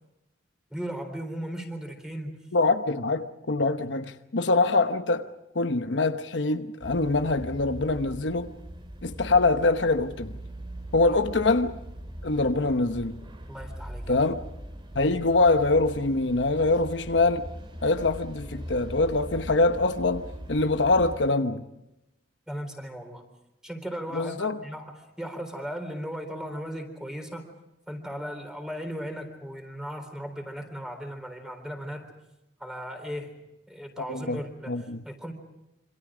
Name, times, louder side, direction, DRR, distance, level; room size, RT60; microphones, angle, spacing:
voice 1, 0.7-2.4 11.1-11.2 13.5-14.2 22.5-23.2 23.6-27.4 27.9-32.1 32.6-33.3 33.7-35.3, equal, 5° right, 3.8 m, -37 dB
voice 2, 2.5-5.3 5.5-8.5 9.0-10.3 10.9-11.8 12.2-13.2 14.1-14.4 14.9-17.5 17.8-21.7 24.1-24.6 34.1-34.4 34.7-35.0, left 3 dB, 75° left, 1.1 m, -24 dB
sound 1, 6.8-21.2, right 1 dB, 30° right, 2.7 m, -41 dB
27.0 x 26.0 x 5.0 m
head